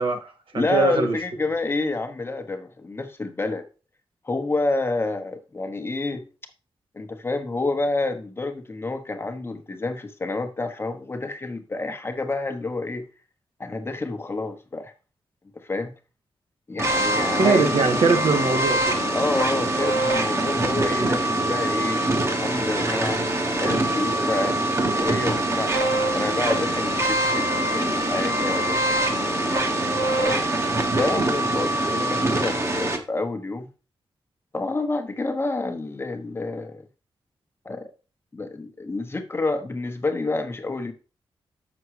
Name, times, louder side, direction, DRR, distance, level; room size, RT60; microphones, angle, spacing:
voice 1, 0.0-1.2 17.4-19.0, right 4 dB, 70° right, 1.7 m, -22 dB
voice 2, 0.5-3.6 4.2-6.3 6.9-13.1 13.6-14.9 15.5-15.9 16.7-17.7 19.1-22.0 22.4-25.7 26.1-29.3 29.8-30.4 30.9-33.7 34.5-36.8 37.6-37.9 38.3-40.9, left 2 dB, 25° left, 1.1 m, -28 dB
sound 1, 16.8-33.0, right 1 dB, 30° right, 1.4 m, -24 dB
6.9 x 6.2 x 4.8 m
wide cardioid pair, 120°, 9 cm